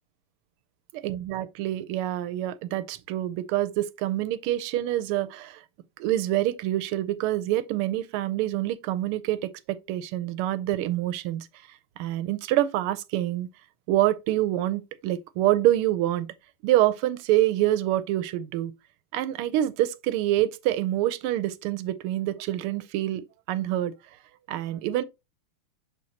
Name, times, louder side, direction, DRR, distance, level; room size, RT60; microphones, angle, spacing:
voice 1, 0.9-5.6 6.0-11.5 12.0-13.5 13.9-16.3 16.6-18.7 19.1-23.9 24.5-25.0, right 14 dB, 85° right, 1.5 m, -26 dB
6.4 x 5.6 x 2.8 m
omnidirectional pair, 2.4 m